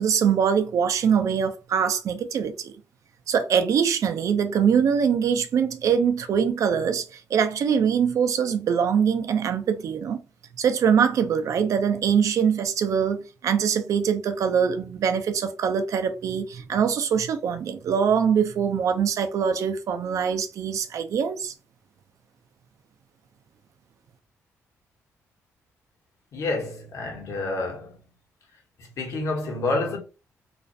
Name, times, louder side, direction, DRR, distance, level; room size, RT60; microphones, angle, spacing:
voice 1, 0.0-2.7 3.3-10.2 10.6-21.5, right 7 dB, 65° right, 0.4 m, -23 dB
voice 2, 26.3-28.0 28.8-30.0, left 2 dB, 65° left, 0.9 m, -28 dB
2.4 x 2.0 x 2.6 m
cardioid pair, 75°, 6 cm